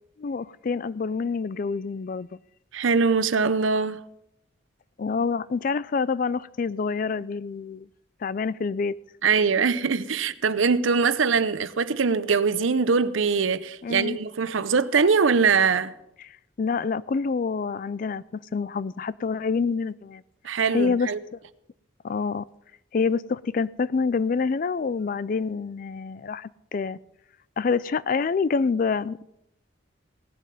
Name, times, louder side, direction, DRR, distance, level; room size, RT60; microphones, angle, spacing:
voice 1, 0.2-2.4 5.0-7.9 8.2-8.9 13.8-14.2 16.6-20.2 20.7-21.4 22.0-22.5 22.9-27.0 27.6-29.2, left 5 dB, 45° left, 0.3 m, -27 dB
voice 2, 2.7-4.0 9.2-15.9 20.4-21.2, right 5 dB, 80° right, 0.7 m, -22 dB
18.0 x 7.4 x 5.3 m
head